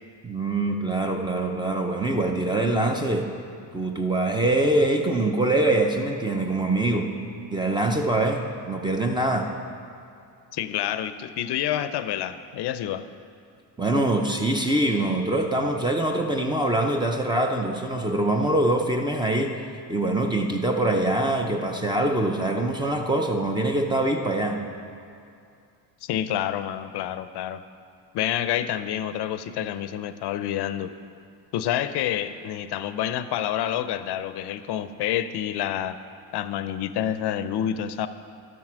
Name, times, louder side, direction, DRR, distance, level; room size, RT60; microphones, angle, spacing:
voice 1, 0.2-3.3 3.7-7.1 7.5-9.5 13.8-19.5 19.9-24.6, right 2 dB, 10° right, 3 dB, 0.5 m, -24 dB
voice 2, 10.5-13.0 26.0-27.6 28.1-30.9 31.5-36.0 36.3-38.1, left 11 dB, 65° left, 12 dB, 0.5 m, -28 dB
12.5 x 7.5 x 6.1 m, 2.5 s
cardioid pair, 180°, 43 cm